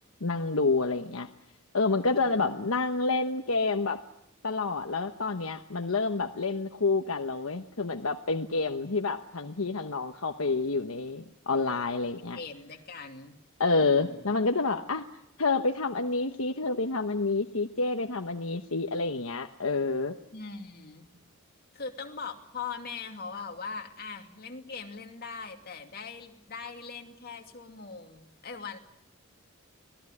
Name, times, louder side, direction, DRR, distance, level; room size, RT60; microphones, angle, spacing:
voice 1, 0.2-1.3 1.7-4.0 4.4-12.4 13.6-15.0 15.4-20.2, left 3 dB, 75° left, 5 dB, 1.1 m, -28 dB
voice 2, 2.1-2.7 12.4-13.4 13.7-14.2 20.3-21.1 21.7-28.8, left 5 dB, 45° left, 3 dB, 2.5 m, -41 dB
26.0 x 18.5 x 9.9 m, 0.79 s
head